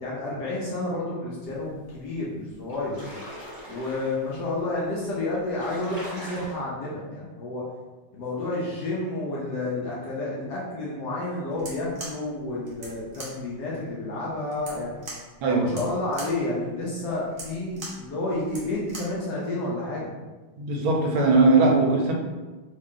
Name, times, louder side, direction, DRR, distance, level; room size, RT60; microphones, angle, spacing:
voice 1, 0.0-3.0 3.7-7.6 8.1-15.0 15.5-20.1, left 2 dB, 70° left, -6 dB, 1.1 m, -30 dB
sound 1, 2.1-2.2 2.5-4.3 5.0-5.1 5.3-6.5, equal, 15° right, 0.9 m, -41 dB
sound 2, 11.5-19.2, right 2 dB, 55° right, 0.9 m, -42 dB
voice 2, 20.6-22.1, right 3 dB, 75° right, 0 dB, 1.4 m, -20 dB
3.7 x 2.4 x 3.6 m, 1.2 s
omnidirectional pair, 2.3 m